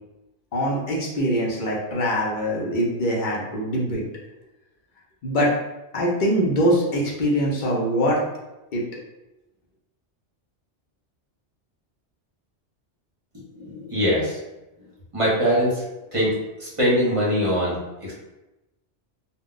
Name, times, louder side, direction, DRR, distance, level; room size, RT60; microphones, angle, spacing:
voice 1, 0.5-4.0 5.2-5.5 5.9-8.2 8.7-8.8, equal, 50° left, -3 dB, 0.7 m, -23 dB
voice 2, 13.5-14.4 15.1-15.8 16.1-18.1, equal, 30° right, -7 dB, 0.7 m, -22 dB
2.2 x 2.1 x 3.7 m, 0.99 s
omnidirectional pair, 1.2 m